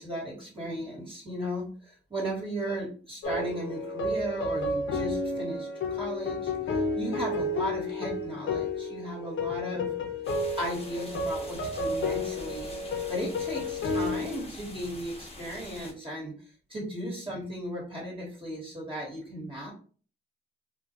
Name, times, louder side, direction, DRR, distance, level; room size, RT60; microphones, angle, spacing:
voice 1, 0.0-9.9 10.6-16.3 16.7-19.7, equal, 25° right, -3 dB, 1.2 m, -36 dB
sound 1, 3.2-14.5, left 2 dB, 75° left, 0.6 m, -31 dB
sound 2, 10.2-15.9, left 2 dB, 30° left, 1.0 m, -46 dB
2.2 x 2.2 x 2.8 m, 0.41 s
supercardioid pair, 50°, 21 cm